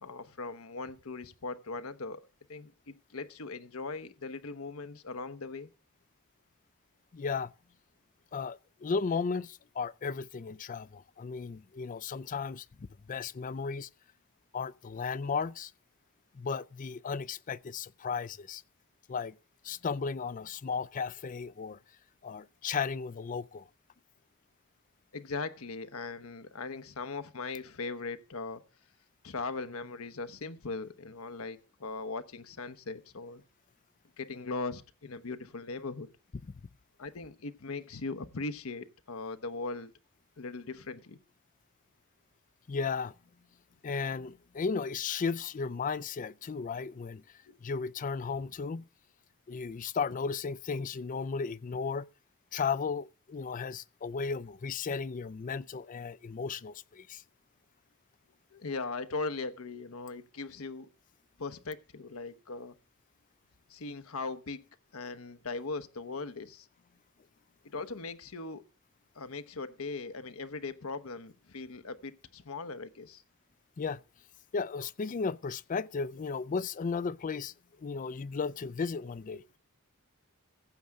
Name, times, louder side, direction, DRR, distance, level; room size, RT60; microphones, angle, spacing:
voice 1, 0.0-5.7 25.1-28.7 29.2-33.4 34.2-36.1 37.0-39.9 40.4-41.2 47.5-47.6 58.5-60.9 61.4-62.7 63.7-64.6 64.9-66.7 67.7-68.6 69.2-73.2 79.3-79.4, left 3 dB, 75° left, 0.9 m, -39 dB
voice 2, 7.1-7.5 8.3-12.6 13.1-13.9 14.5-15.7 16.3-18.6 19.1-19.4 19.6-21.8 22.2-23.6 42.7-43.1 43.8-47.2 47.6-48.9 49.5-52.1 52.5-57.2 73.8-74.0 74.5-77.5 77.8-79.4, left 5 dB, 40° left, 0.4 m, -35 dB
15.5 x 7.6 x 3.5 m
head